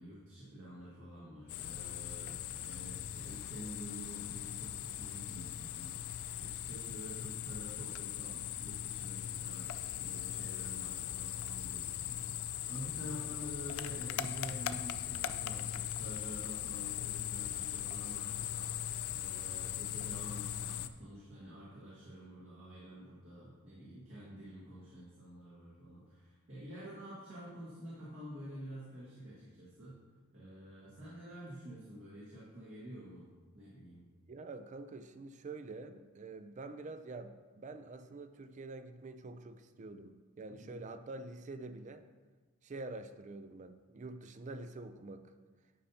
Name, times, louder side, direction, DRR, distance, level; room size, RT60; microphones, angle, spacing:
voice 1, 0.0-30.0 30.3-33.3 33.5-34.0 40.5-40.8, equal, 60° right, -8 dB, 1.8 m, -49 dB
sound 1, 1.5-20.9, left 11 dB, 80° left, 0.4 m, -40 dB
voice 2, 34.3-42.1 42.6-45.2, right 3 dB, 35° right, 9 dB, 0.4 m, -46 dB
10.0 x 5.5 x 2.8 m, 1.3 s
head